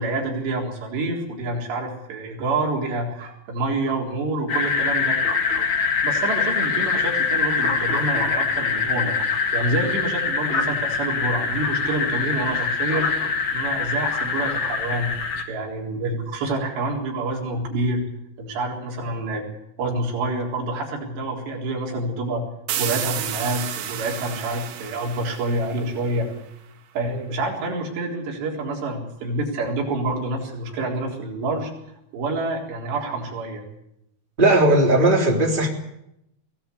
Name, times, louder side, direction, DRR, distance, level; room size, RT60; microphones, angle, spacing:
voice 1, 0.0-5.2 6.0-9.1 9.5-15.1 15.5-18.0 18.4-19.4 19.8-22.4 22.8-26.3 26.9-31.7 32.1-33.6, right 2 dB, 65° right, -1 dB, 6.1 m, -27 dB
sound 1, 4.5-15.4, left 5 dB, 50° left, 1.5 m, -24 dB
sound 2, 22.7-26.3, right 10 dB, 85° right, 4.0 m, -31 dB
voice 2, 34.4-35.7, right 1 dB, 10° right, 0 dB, 2.8 m, -17 dB
22.5 x 17.0 x 8.5 m, 0.81 s
omnidirectional pair, 5.3 m